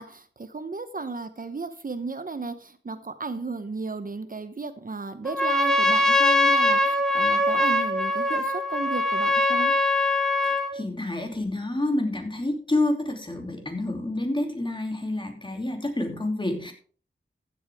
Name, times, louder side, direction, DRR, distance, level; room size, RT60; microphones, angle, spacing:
voice 1, 0.0-9.7, right 3 dB, 45° right, 10 dB, 0.9 m, -34 dB
Trumpet, 5.3-10.8, left 1 dB, 5° left, 1.6 m, -22 dB
voice 2, 10.4-16.7, left 1 dB, 25° left, 3 dB, 2.8 m, -28 dB
15.0 x 8.1 x 3.5 m, 0.43 s
wide cardioid pair, 75°, 20 cm